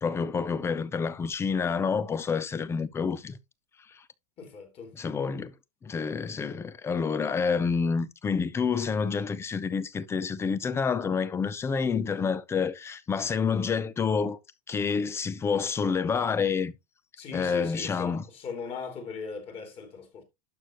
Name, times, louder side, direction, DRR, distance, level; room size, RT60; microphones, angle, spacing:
voice 1, 0.0-3.4 4.9-5.5 5.8-14.4 14.7-16.7 17.3-18.2, left 5 dB, 15° left, 0.6 m, -28 dB
voice 2, 4.4-4.9 17.2-20.2, left 5 dB, 30° left, 2.8 m, -39 dB
12.0 x 6.2 x 3.0 m
supercardioid pair, 155°, 20 cm